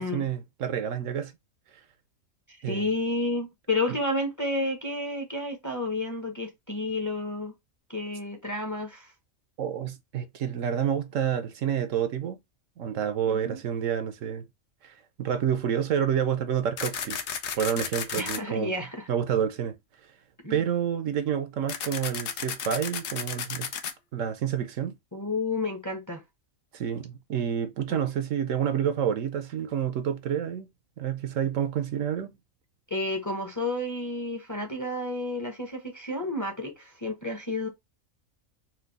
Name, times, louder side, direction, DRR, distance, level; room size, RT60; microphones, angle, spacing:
voice 1, 0.0-1.3 2.6-2.9 3.9-4.0 9.6-12.4 12.8-14.5 14.8-17.2 17.6-18.7 19.1-19.8 20.5-23.7 24.1-24.9 26.7-30.7 31.0-32.4, right 8 dB, 75° right, 1.1 m, -29 dB
voice 2, 2.7-7.5 7.9-9.1 13.3-13.6 18.2-19.1 20.4-20.6 25.1-26.2 27.9-28.0 32.9-37.7, left 2 dB, 15° left, 0.8 m, -31 dB
sound 1, 16.8-18.4 21.7-23.9, left 7 dB, 65° left, 0.9 m, -33 dB
4.4 x 2.4 x 3.9 m
omnidirectional pair, 1.4 m